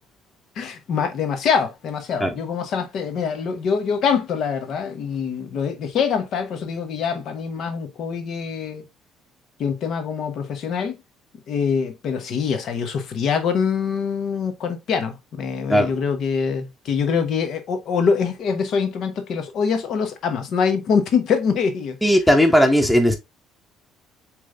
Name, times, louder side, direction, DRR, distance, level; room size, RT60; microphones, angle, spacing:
voice 1, 0.6-8.8 9.6-11.0 11.5-22.0, left 6 dB, 55° left, 1.0 m, -24 dB
voice 2, 22.0-23.2, equal, ahead, 0.6 m, -16 dB
6.4 x 3.2 x 2.5 m
cardioid pair, 140°, 0 cm